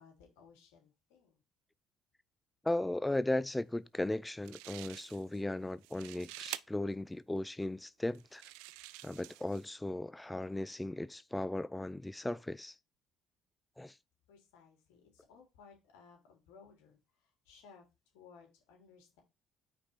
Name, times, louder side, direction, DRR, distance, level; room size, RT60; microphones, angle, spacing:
voice 1, 0.0-1.4 14.3-17.0 17.5-17.8 18.1-19.2, left 5 dB, 80° left, 3.6 m, -59 dB
voice 2, 2.6-8.4 9.0-12.8 13.8-14.0, left 1 dB, 10° left, 0.3 m, -36 dB
sound 1, 4.1-4.2 4.4-5.4 5.7-6.6 7.4-7.5 8.1-9.7, right 17 dB, 80° right, 0.4 m, -47 dB
5.2 x 5.0 x 4.5 m
hypercardioid pair, 60°, 0 cm